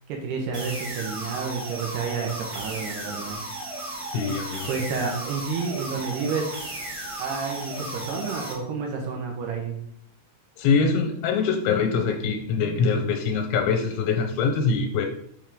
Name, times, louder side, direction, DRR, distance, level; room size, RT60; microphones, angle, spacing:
voice 1, 0.1-3.4 4.7-6.6 7.2-9.8, right 5 dB, 75° right, 1 dB, 2.9 m, -30 dB
sound 1, 0.5-8.5, right 1 dB, 40° right, 1.6 m, -35 dB
voice 2, 4.1-4.7 10.6-15.1, left 5 dB, 85° left, 5 dB, 3.2 m, -23 dB
7.2 x 5.3 x 3.7 m, 0.68 s
omnidirectional pair, 5.2 m